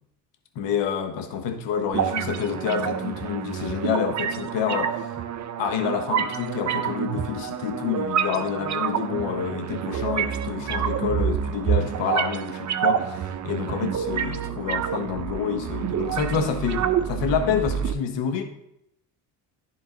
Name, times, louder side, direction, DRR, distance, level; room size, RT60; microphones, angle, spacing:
voice 1, 0.5-5.1 5.6-18.4, left 7 dB, 70° left, 5 dB, 1.3 m, -28 dB
sound 1, 1.9-17.9, right 8 dB, 40° right, 0.7 m, -28 dB
10.5 x 3.8 x 3.9 m, 0.80 s
supercardioid pair, 75°, 45 cm